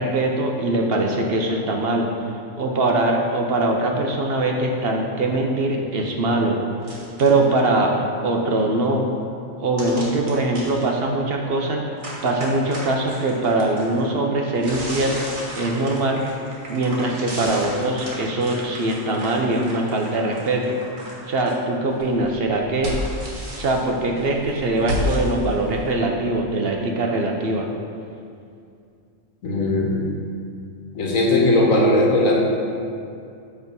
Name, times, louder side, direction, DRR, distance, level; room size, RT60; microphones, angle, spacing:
voice 1, 0.0-2.1 2.6-6.6 7.2-7.9 8.2-9.0 9.6-15.2 15.5-16.2 16.7-20.8 21.3-23.2 23.6-27.7, right 2 dB, 55° right, 1 dB, 0.8 m, -22 dB
sound 1, 6.8-7.4 9.8-10.8 12.0-14.0 14.5-21.5 21.9-25.9, equal, 90° right, 1.8 m, -32 dB
voice 2, 29.4-30.0 30.9-32.4, left 2 dB, 90° left, -2 dB, 1.5 m, -18 dB
8.0 x 3.5 x 5.3 m, 2.4 s
omnidirectional pair, 1.3 m